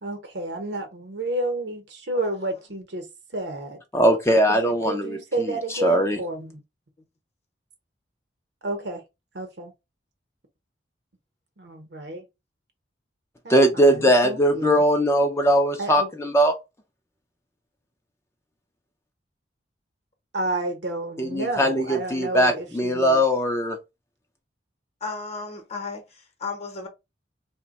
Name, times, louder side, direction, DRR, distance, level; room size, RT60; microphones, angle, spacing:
voice 1, 0.0-3.1 3.3-3.8 4.5-6.6 8.6-9.0 9.3-9.7 11.6-12.2 13.4-14.8 15.8-16.1 20.3-23.2, right 2 dB, 65° right, 0.8 m, -31 dB
voice 2, 3.9-5.5 5.8-6.2 13.5-16.5 21.2-23.8, equal, 15° left, 0.4 m, -20 dB
voice 3, 25.0-26.9, left 4 dB, 35° left, 0.8 m, -34 dB
2.9 x 2.2 x 4.0 m
head